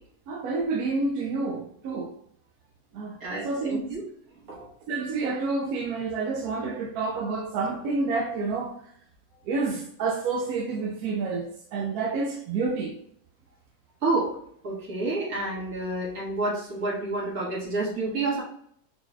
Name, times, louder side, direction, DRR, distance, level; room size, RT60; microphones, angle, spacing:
voice 1, 0.3-2.1 2.9-3.2 3.4-3.9 4.9-8.7 9.5-11.5 11.7-12.9, right 3 dB, 70° right, 2 dB, 0.9 m, -28 dB
voice 2, 3.2-4.0 4.5-4.7 14.0-14.3 14.6-18.4, right 2 dB, 50° right, -5 dB, 2.1 m, -29 dB
4.1 x 4.1 x 2.2 m, 0.66 s
omnidirectional pair, 2.0 m